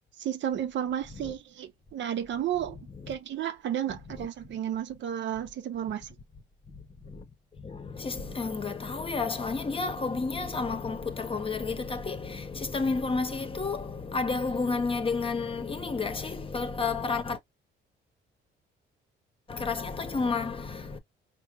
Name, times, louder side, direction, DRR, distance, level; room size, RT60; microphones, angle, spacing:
voice 1, 0.2-2.8 3.1-6.2, right 10 dB, 65° right, 0.7 m, -32 dB
voice 2, 7.6-17.4 19.5-21.0, left 4 dB, 25° left, 0.8 m, -31 dB
4.8 x 2.1 x 3.0 m
cardioid pair, 90°, 20 cm